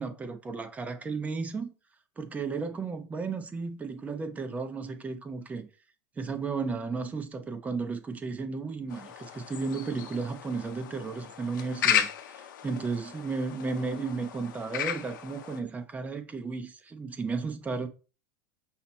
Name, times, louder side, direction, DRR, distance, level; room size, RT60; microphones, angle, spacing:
voice 1, 0.0-1.7 2.2-5.7 6.2-17.9, right 4 dB, 15° right, 0.5 m, -34 dB
sound 1, 8.9-15.6, left 9 dB, 85° left, 0.6 m, -34 dB
5.6 x 2.0 x 4.1 m
supercardioid pair, 125°, 10 cm